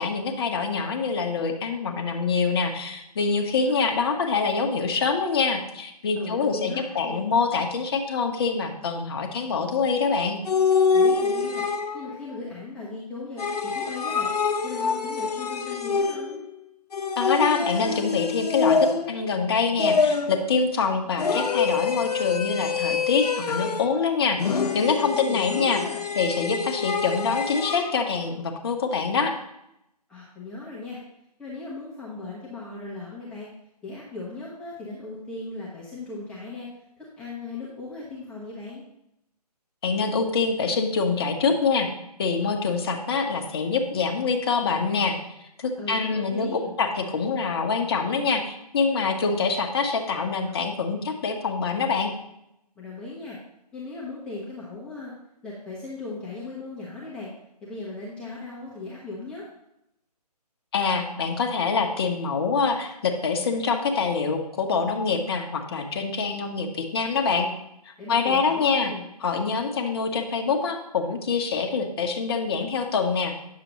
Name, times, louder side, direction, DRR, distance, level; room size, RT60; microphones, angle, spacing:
voice 1, 0.0-10.4 17.2-24.4 24.7-25.8 26.2-29.3 39.8-41.9 42.2-45.2 45.6-52.1 60.7-67.5 68.1-68.9 69.2-73.3, left 5 dB, 40° left, 4 dB, 1.0 m, -25 dB
voice 2, 6.1-7.2 10.9-11.6 11.9-14.3 14.6-16.4 25.0-26.0 30.1-31.0 31.4-33.5 33.8-36.7 37.0-38.8 45.8-46.8 52.8-53.4 53.7-55.1 55.4-57.3 57.6-59.4 68.0-69.1, left 3 dB, 5° left, -8 dB, 0.9 m, -37 dB
sound 1, 10.5-12.2 13.4-16.5 16.9-19.3 19.8-20.5 21.2-24.0 24.4-27.9, left 5 dB, 70° left, 0.8 m, -25 dB
9.3 x 6.7 x 3.0 m, 0.83 s
figure-of-eight pair, 150°, 21 cm